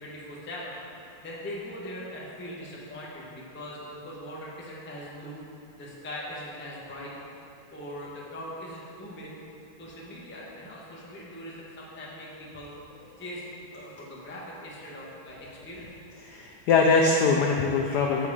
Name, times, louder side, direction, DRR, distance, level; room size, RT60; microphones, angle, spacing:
voice 1, 0.0-0.7 1.2-5.4 5.8-7.1 7.7-9.3 9.8-12.7 13.2-13.4 13.7-16.0, equal, 15° left, -5 dB, 0.4 m, -41 dB
voice 2, 16.2-18.3, left 4 dB, 90° left, 1 dB, 0.9 m, -22 dB
7.6 x 4.6 x 4.9 m, 2.6 s
omnidirectional pair, 2.3 m